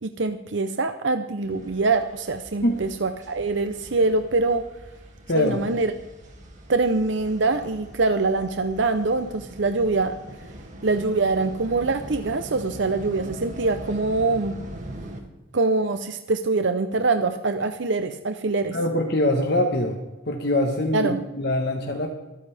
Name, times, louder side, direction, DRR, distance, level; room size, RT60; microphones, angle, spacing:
voice 1, 0.0-4.6 5.3-5.9 6.7-10.1 10.8-14.5 15.5-18.8 20.9-21.2, right 3 dB, 65° right, 8 dB, 0.8 m, -24 dB
sound 1, 1.4-15.2, right 1 dB, 40° right, 2.4 m, -41 dB
voice 2, 18.7-20.0 20.3-22.1, left 1 dB, 55° left, 2 dB, 1.4 m, -23 dB
25.5 x 9.4 x 3.5 m, 1.1 s
head